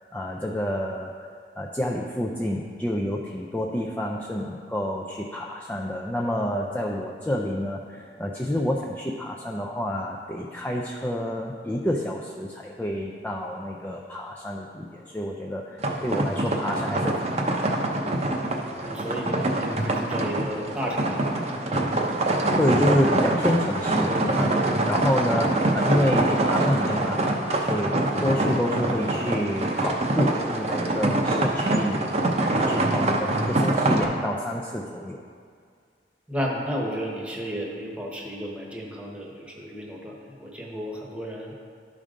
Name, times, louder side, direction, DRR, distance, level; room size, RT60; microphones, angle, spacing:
voice 1, 0.1-1.1 1.6-17.8 22.6-32.1 32.5-35.2, left 1 dB, 10° left, -1 dB, 0.4 m, -28 dB
sound 1, 15.8-34.0, right 2 dB, 35° right, 0.7 m, -24 dB
voice 2, 18.8-21.3 36.3-41.5, equal, 5° right, -2 dB, 1.0 m, -33 dB
12.0 x 5.1 x 3.7 m, 2.2 s
head